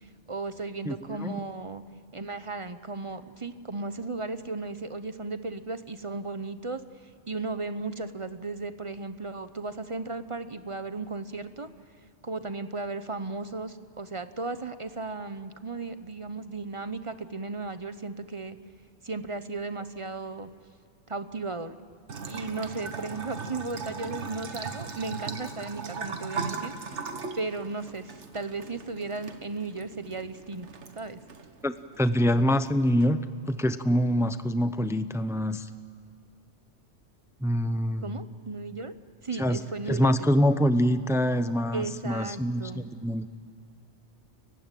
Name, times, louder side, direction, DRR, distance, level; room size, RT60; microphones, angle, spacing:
voice 1, 0.3-1.8 2.1-6.8 7.3-11.7 12.2-18.6 19.0-20.5 21.1-21.7 22.3-27.0 27.4-30.7 31.0-31.2 38.0-38.9 39.2-40.5 41.7-42.9, right 3 dB, 30° right, 11 dB, 0.9 m, -35 dB
voice 2, 0.8-1.4 31.6-33.2 33.5-35.7 37.4-38.1 39.4-39.6 39.9-43.3, equal, 5° right, 11 dB, 0.6 m, -25 dB
Bathtub (filling or washing) / Trickle dribble, 22.1-33.0, right 5 dB, 85° right, 1.7 m, -39 dB
30.0 x 16.0 x 9.1 m, 2.4 s
omnidirectional pair, 1.2 m